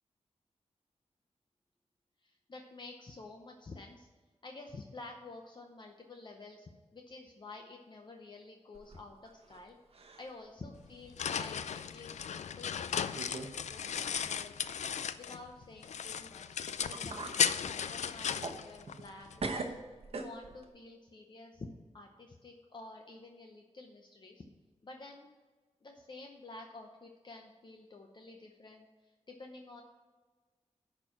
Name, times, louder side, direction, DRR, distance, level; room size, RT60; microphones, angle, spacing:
voice 1, 2.2-4.1 4.4-9.8 10.2-14.7 15.2-16.5 16.8-19.8 20.1-21.7 21.9-24.4 24.8-25.3 25.8-29.8, left 3 dB, 40° left, 3 dB, 0.8 m, -50 dB
sound 1, 8.7-9.6 9.9-10.4 10.8-10.9 11.8-11.9 12.6-12.7 13.1-13.6 13.8-13.9 16.5-16.6 16.9-17.4 17.9-19.1 19.4-20.7, right 3 dB, 60° right, 1.0 m, -41 dB
sound 2, 10.8-15.5 15.8-19.4, left 7 dB, 80° left, 0.4 m, -36 dB
11.5 x 4.5 x 5.7 m, 1.4 s
wide cardioid pair, 120°, 12 cm